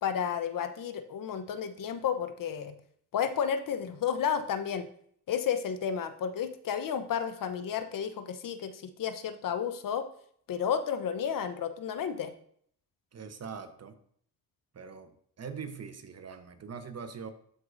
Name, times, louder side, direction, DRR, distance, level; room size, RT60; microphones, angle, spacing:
voice 1, 0.0-2.7 3.1-4.9 5.3-10.0 10.5-12.3, left 8 dB, 55° left, 9 dB, 0.9 m, -32 dB
voice 2, 13.1-13.9 14.7-15.1 15.4-17.3, right 6 dB, 40° right, 9 dB, 1.0 m, -42 dB
13.0 x 4.6 x 2.6 m, 0.63 s
supercardioid pair, 75°, 41 cm